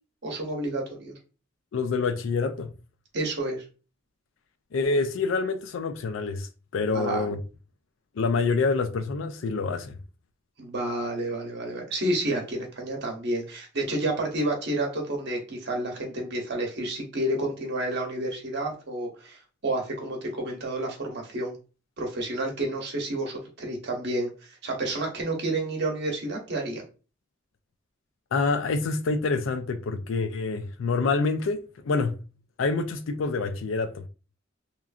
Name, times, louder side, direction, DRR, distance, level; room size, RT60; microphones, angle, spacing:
voice 1, 0.2-1.1 3.1-3.6 6.9-7.3 10.6-21.6 22.0-26.8, right 1 dB, 60° right, 0.8 m, -30 dB
voice 2, 1.7-2.7 4.7-7.4 8.2-10.0 28.3-31.6 31.8-32.2 32.6-34.0, left 4 dB, 80° left, 0.4 m, -27 dB
3.0 x 2.4 x 2.3 m
head